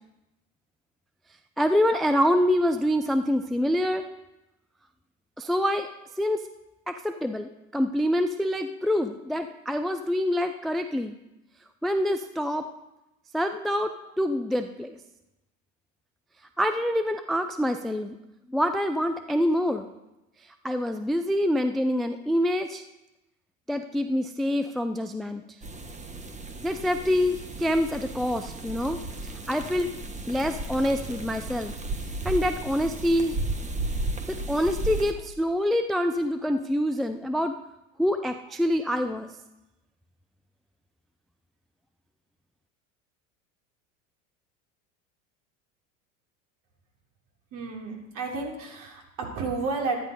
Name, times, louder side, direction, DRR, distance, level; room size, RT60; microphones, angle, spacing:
voice 1, 1.6-4.1 5.4-5.9 6.2-6.4 6.9-11.1 11.8-12.7 13.3-15.0 16.6-18.2 18.5-19.9 20.6-22.8 23.7-25.4 26.6-29.9 30.3-31.7 32.2-33.3 34.3-37.5 38.0-39.3, equal, ahead, 8 dB, 0.4 m, -26 dB
sound 1, 25.6-35.1, right 2 dB, 15° right, 1.3 m, -34 dB
voice 2, 47.5-50.0, right 4 dB, 50° right, 0 dB, 3.6 m, -31 dB
12.5 x 9.4 x 5.3 m, 0.96 s
hypercardioid pair, 90°, 41 cm